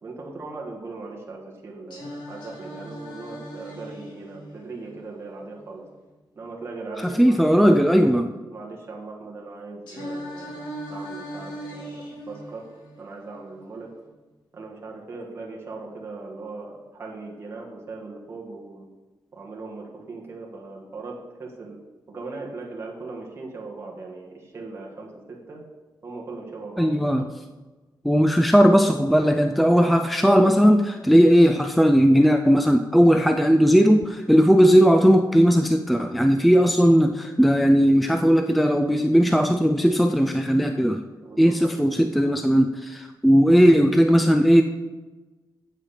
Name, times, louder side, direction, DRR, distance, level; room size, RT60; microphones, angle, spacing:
voice 1, 0.0-5.9 6.3-7.4 8.5-12.7 13.0-13.9 14.5-18.9 19.3-21.8 22.1-25.6 26.0-27.1 41.2-41.7, right 3 dB, 30° right, -2 dB, 1.7 m, -39 dB
Singing, 1.9-5.9 9.9-13.9, equal, 75° left, 3.1 m, -39 dB
voice 2, 7.0-8.3 26.8-27.2 28.0-41.1 41.4-44.6, equal, ahead, 6 dB, 0.3 m, -17 dB
8.2 x 7.8 x 5.7 m, 1.2 s
wide cardioid pair, 170°, 8 cm